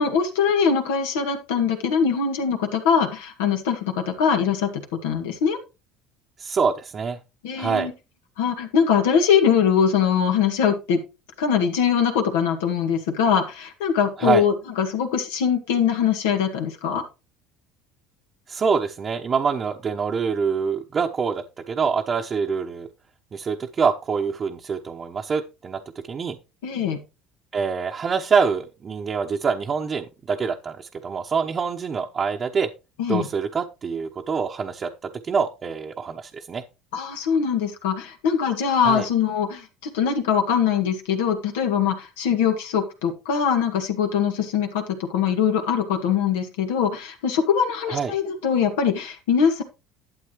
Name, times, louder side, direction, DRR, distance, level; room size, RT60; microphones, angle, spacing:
voice 1, 0.0-5.6 7.4-7.9 8.4-11.0 11.4-17.0 26.6-27.0 33.0-33.3 36.9-49.6, left 7 dB, 90° left, 5 dB, 1.8 m, -22 dB
voice 2, 6.4-7.2 7.5-7.9 14.2-14.5 18.5-22.9 23.3-25.8 26.1-26.4 27.5-32.7 33.1-36.6 38.8-39.1 47.9-48.1, right 5 dB, 35° right, 1 dB, 0.9 m, -25 dB
11.5 x 8.2 x 3.1 m, 0.28 s
supercardioid pair, 95°, 0 cm